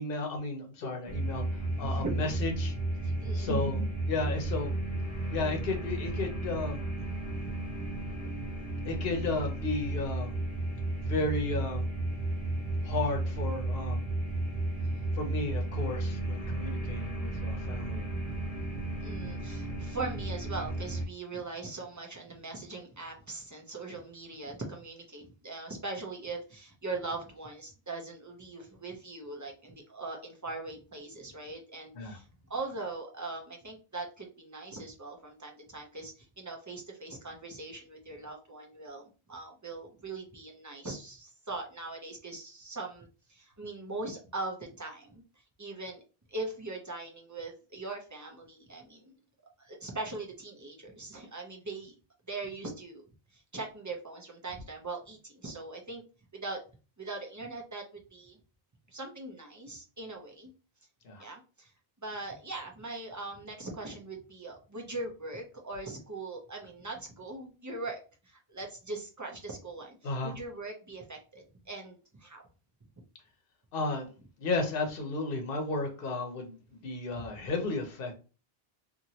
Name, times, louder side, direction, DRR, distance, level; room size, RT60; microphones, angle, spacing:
voice 1, 0.0-1.4 1.8-2.7 3.3-4.7 5.3-6.8 8.8-10.3 11.0-11.9 12.8-14.0 15.1-18.0 31.9-32.2 61.0-61.2 70.0-70.4 73.7-74.1 74.4-78.1, left 2 dB, 65° left, 3 dB, 0.9 m, -33 dB
sound 1, 1.1-21.0, right 2 dB, 40° left, 0.9 m, -33 dB
voice 2, 1.8-2.2 3.0-3.7 7.4-7.5 8.2-8.3 8.8-8.9 10.9-11.0 12.7-12.8 14.8-15.1 16.9-17.0 17.6-17.8 18.5-45.2 45.6-46.0 46.3-49.1 49.6-51.9 52.3-53.0 53.3-56.0 56.3-56.6 57.0-58.4 58.9-60.5 61.2-61.7 62.0-72.4, right 3 dB, 25° right, 1 dB, 0.5 m, -41 dB
2.9 x 2.6 x 2.7 m, 0.34 s
omnidirectional pair, 1.0 m